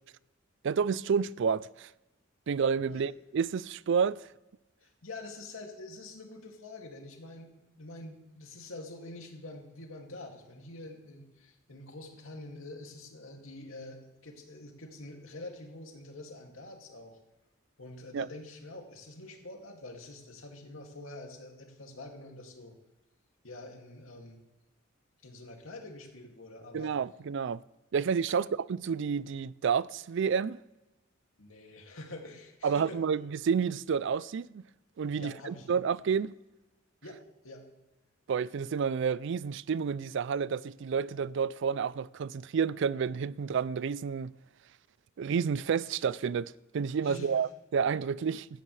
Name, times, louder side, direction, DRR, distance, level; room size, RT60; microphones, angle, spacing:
voice 1, 0.6-1.9 2.5-4.2 18.1-18.3 26.7-27.6 27.9-30.6 32.6-34.6 35.0-36.3 38.3-44.3 45.2-48.5, right 6 dB, 65° right, 0.4 m, -30 dB
voice 2, 4.8-17.2 17.8-22.8 23.4-24.4 25.2-26.9 31.4-33.0 35.1-35.7 37.0-37.6 47.0-47.4, left 2 dB, 90° left, 2.4 m, -46 dB
16.0 x 13.0 x 3.3 m
head